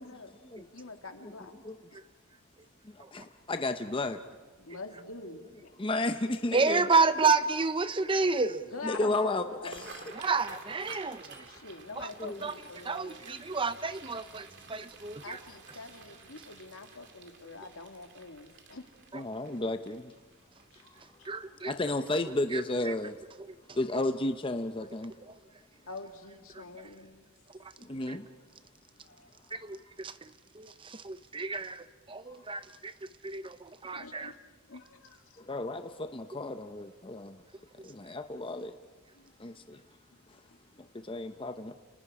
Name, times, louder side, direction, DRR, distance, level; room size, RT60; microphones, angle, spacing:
voice 1, 0.0-0.3 0.6-1.5 1.9-2.0 4.6-5.7 8.7-9.4 9.6-10.4 11.5-13.2 15.2-18.9 20.7-20.9 21.2-21.3 25.9-27.2 29.0-29.3 33.8-34.4 34.7-35.4 39.1-39.3 40.1-40.4, left 3 dB, 80° left, 2.4 m, -45 dB
voice 2, 2.8-4.2 5.8-6.9 8.8-9.9 12.2-12.4 19.1-20.1 21.6-23.2 23.7-25.1 27.8-28.3 35.4-37.4 37.8-38.7 39.4-39.8 40.8-41.7, left 2 dB, 25° left, 0.8 m, -33 dB
voice 3, 6.5-8.7 10.1-11.3 12.0-12.1 12.4-12.5 12.8-15.4 21.3-21.7 22.5-22.6 22.9-23.0 25.3-25.4 28.1-28.2 29.5-30.3 30.5-32.9 33.2-34.3 37.8-37.9, right 4 dB, 25° right, 0.7 m, -30 dB
sound 1, 9.6-22.7 23.2-23.4 23.8-24.2 24.6-24.7 26.0-26.2 26.5-26.6 27.1-27.2, right 4 dB, 55° right, 2.4 m, -52 dB
29.5 x 29.5 x 4.9 m
head